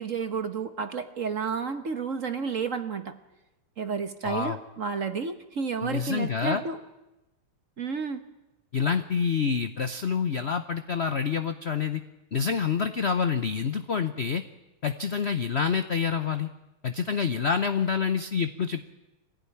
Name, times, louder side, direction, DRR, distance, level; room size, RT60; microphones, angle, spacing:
voice 1, 0.0-3.2 3.8-6.8 7.8-8.2, right 5 dB, 45° right, 9 dB, 1.2 m, -31 dB
voice 2, 4.2-4.6 5.8-6.6 8.7-12.0 12.3-14.4 14.8-16.5 16.8-18.9, left 6 dB, 75° left, 9 dB, 0.6 m, -27 dB
24.0 x 16.0 x 9.8 m, 1.0 s
omnidirectional pair, 2.4 m